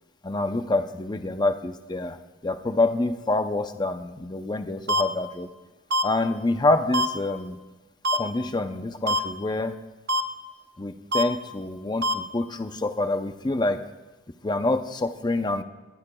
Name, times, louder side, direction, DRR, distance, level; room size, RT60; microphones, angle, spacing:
voice 1, 0.2-2.2 2.4-5.5 6.0-7.6 8.1-9.7 10.8-13.8 14.4-15.6, left 2 dB, 20° left, 8 dB, 0.6 m, -26 dB
sound 1, 4.9-5.0 5.9-6.0 6.9-7.1 8.0-8.2 9.1-9.2 10.1-10.2 11.1-11.2 12.0-12.1, equal, 50° right, 0.8 m, -22 dB
22.5 x 18.5 x 2.3 m, 1.1 s
head